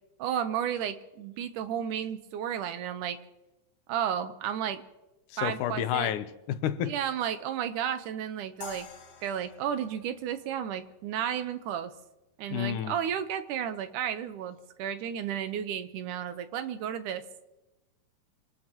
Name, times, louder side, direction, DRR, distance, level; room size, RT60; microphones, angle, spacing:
voice 1, 0.2-3.2 3.9-4.8 5.4-6.1 6.8-8.9 9.2-11.9 12.4-17.2, right 9 dB, 90° right, 2.5 m, -33 dB
voice 2, 5.3-6.9 12.5-12.9, left 10 dB, 85° left, 2.3 m, -30 dB
sound 1, 8.6-11.7, left 5 dB, 65° left, 3.2 m, -48 dB
26.0 x 18.5 x 3.0 m
omnidirectional pair, 3.5 m